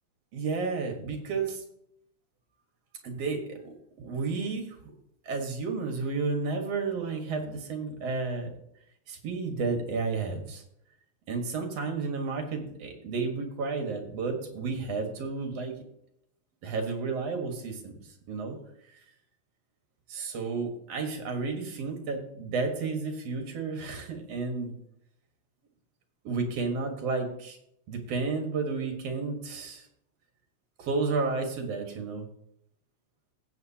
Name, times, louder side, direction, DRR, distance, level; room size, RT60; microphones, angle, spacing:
voice 1, 0.3-1.6 3.0-4.8 5.3-8.5 9.1-10.6 11.3-15.7 16.6-18.0 18.3-18.6 20.1-24.7 26.2-27.6 27.9-29.9 30.8-32.2, right 4 dB, 60° right, 4 dB, 2.5 m, -32 dB
15.5 x 7.9 x 2.8 m, 0.74 s
omnidirectional pair, 3.3 m